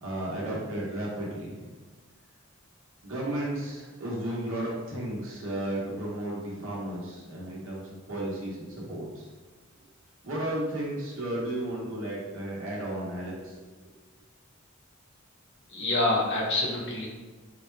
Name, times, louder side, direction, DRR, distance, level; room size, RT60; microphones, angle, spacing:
voice 1, 0.0-1.7 3.0-7.8 8.1-9.3 10.2-13.6, right 1 dB, 65° right, -5 dB, 1.0 m, -33 dB
voice 2, 15.7-17.1, left 2 dB, 55° left, -2 dB, 0.7 m, -26 dB
4.1 x 2.2 x 3.2 m, 1.3 s
head